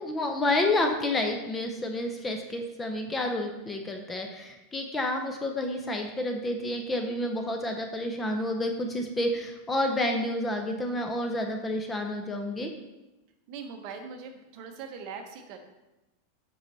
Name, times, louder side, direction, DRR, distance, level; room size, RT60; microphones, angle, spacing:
voice 1, 0.0-12.7, left 1 dB, 10° left, 3 dB, 0.7 m, -29 dB
voice 2, 13.5-15.7, right 5 dB, 45° right, 5 dB, 1.0 m, -41 dB
8.0 x 4.8 x 4.1 m, 1.0 s
supercardioid pair, 155°, 0 cm